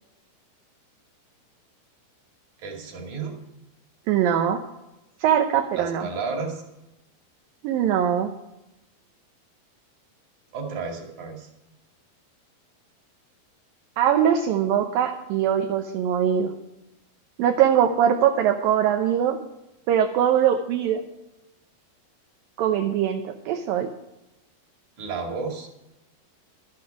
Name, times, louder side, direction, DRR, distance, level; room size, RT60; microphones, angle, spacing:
voice 1, 2.6-3.4 5.8-6.6 10.5-11.5 25.0-25.7, right 4 dB, 50° right, 2 dB, 3.4 m, -32 dB
voice 2, 4.1-4.6 5.2-6.1 7.6-8.3 14.0-16.5 17.4-19.4 19.9-21.0 22.6-23.9, right 9 dB, 75° right, 4 dB, 2.4 m, -22 dB
13.0 x 11.5 x 4.7 m, 0.93 s
omnidirectional pair, 4.6 m